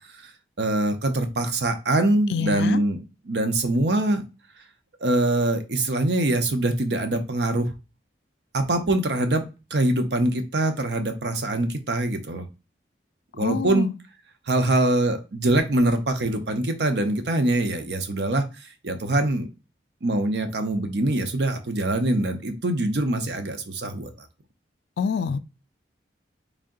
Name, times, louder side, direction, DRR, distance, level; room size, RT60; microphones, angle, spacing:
voice 1, 0.6-3.0 3.2-4.2 5.0-7.7 8.5-9.4 9.7-12.4 13.3-13.9 14.5-18.4 18.8-19.5 20.0-24.1, right 2 dB, 75° right, 0.7 m, -23 dB
voice 2, 2.3-2.8 13.4-13.9 25.0-25.4, left 5 dB, 75° left, 0.3 m, -26 dB
3.5 x 2.7 x 3.7 m
head